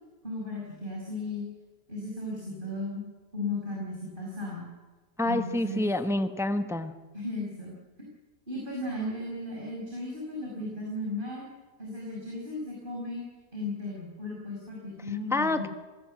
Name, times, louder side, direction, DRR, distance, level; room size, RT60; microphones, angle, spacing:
voice 1, 0.2-1.4 1.9-3.0 3.3-4.7 5.2-5.8 7.1-7.7 8.0-8.1 8.5-11.5 11.8-13.2 13.5-15.6, left 2 dB, 30° right, -3 dB, 6.0 m, -35 dB
voice 2, 5.2-6.9 15.3-15.7, left 2 dB, ahead, 9 dB, 1.0 m, -27 dB
27.0 x 19.0 x 7.7 m, 1.3 s
omnidirectional pair, 1.8 m